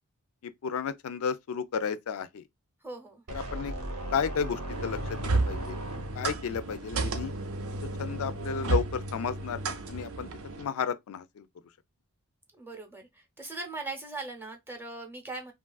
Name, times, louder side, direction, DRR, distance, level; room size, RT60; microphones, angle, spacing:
voice 1, 0.4-2.4 3.3-3.7 4.1-5.8 6.2-7.3 8.0-10.3 10.6-11.5, left 6 dB, 65° left, 0.4 m, -33 dB
voice 2, 2.8-3.2 12.6-15.5, right 3 dB, 10° right, 0.6 m, -40 dB
sound 1, 3.3-6.5, right 1 dB, 80° right, 0.8 m, -37 dB
sound 2, 4.7-10.7, right 2 dB, 65° right, 0.5 m, -32 dB
3.1 x 2.3 x 2.2 m
head